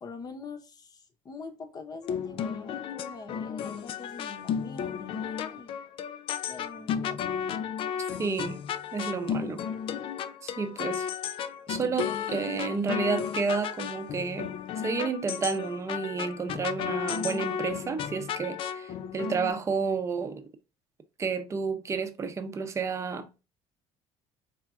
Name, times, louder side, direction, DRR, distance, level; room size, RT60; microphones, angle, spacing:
voice 1, 0.0-5.7 6.4-7.2, left 4 dB, 30° left, 0.8 m, -44 dB
sound 1, 2.0-19.5, left 8 dB, 50° left, 0.4 m, -34 dB
voice 2, 8.2-8.6 8.9-9.6 10.4-11.1 11.7-20.4 21.2-23.3, right 5 dB, 25° right, 0.7 m, -31 dB
4.3 x 3.5 x 2.3 m
cardioid pair, 135°, 12 cm